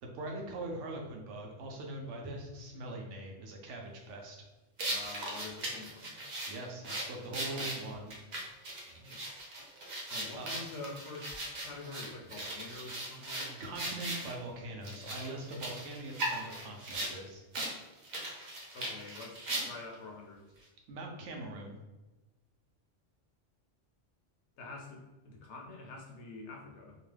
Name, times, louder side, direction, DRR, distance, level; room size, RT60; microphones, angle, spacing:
voice 1, 0.0-4.4 6.5-8.1 10.3-10.5 12.7-12.8 13.6-17.4 20.9-21.8, right 2 dB, 80° right, 1 dB, 1.0 m, -42 dB
sound 1, 4.8-14.3 14.8-17.1 17.5-17.7 18.0-19.9, right 1 dB, 45° right, 0.6 m, -38 dB
voice 2, 4.9-6.2 8.9-9.4 10.1-13.6 18.7-20.5 24.6-27.0, left 3 dB, 70° left, 1 dB, 0.9 m, -47 dB
2.9 x 2.2 x 3.2 m, 1.1 s
omnidirectional pair, 1.2 m